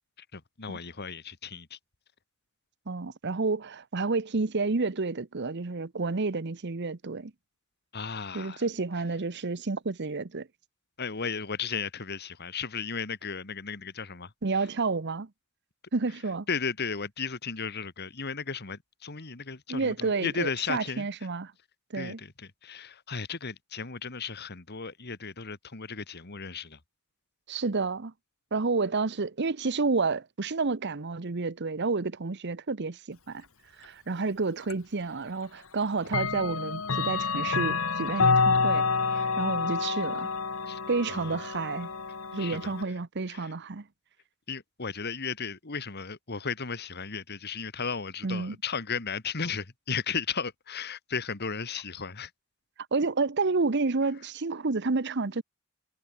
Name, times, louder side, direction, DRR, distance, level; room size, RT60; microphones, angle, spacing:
voice 1, 0.2-1.8 7.9-8.6 11.0-14.7 16.5-21.1 21.9-26.8 40.7-40.8 41.1-41.4 42.4-42.7 43.3-43.5 44.5-52.3, left 5 dB, 50° left, 1.8 m, -35 dB
voice 2, 2.9-7.3 8.3-10.5 14.4-15.3 15.9-16.5 19.7-21.5 21.9-22.2 27.5-28.1 28.5-33.4 33.8-38.8 39.1-40.3 40.9-41.9 42.3-43.8 48.2-48.5 52.9-55.4, right 3 dB, 55° right, 0.9 m, -30 dB
Clock, 34.7-34.8 36.1-42.8, left 4 dB, 80° left, 1.8 m, -28 dB
head